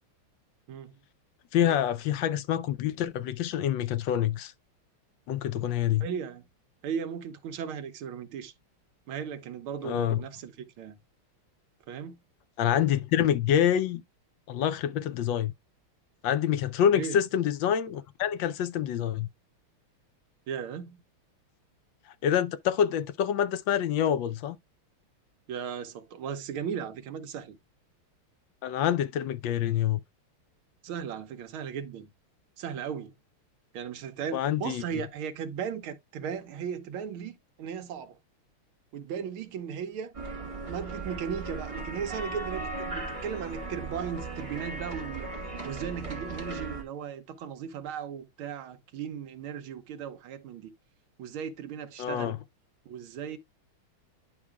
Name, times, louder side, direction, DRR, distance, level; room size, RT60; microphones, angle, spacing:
voice 1, 1.5-4.5 5.3-6.1 9.8-10.2 12.6-14.0 14.5-15.5 16.2-19.3 22.2-24.6 28.6-30.0 34.3-35.0 52.0-52.4, left 10 dB, 70° left, 1.2 m, -26 dB
voice 2, 6.0-6.5 6.8-8.5 9.1-11.0 11.9-12.2 16.9-17.2 20.5-21.0 25.5-27.6 30.8-32.1 32.6-33.1 33.7-38.2 38.9-40.1 40.6-45.3 45.6-50.7 51.2-52.4 52.9-53.4, right 7 dB, 75° right, 1.7 m, -36 dB
sound 1, 40.1-46.8, right 3 dB, 20° right, 1.0 m, -37 dB
10.5 x 4.8 x 2.2 m
omnidirectional pair, 2.4 m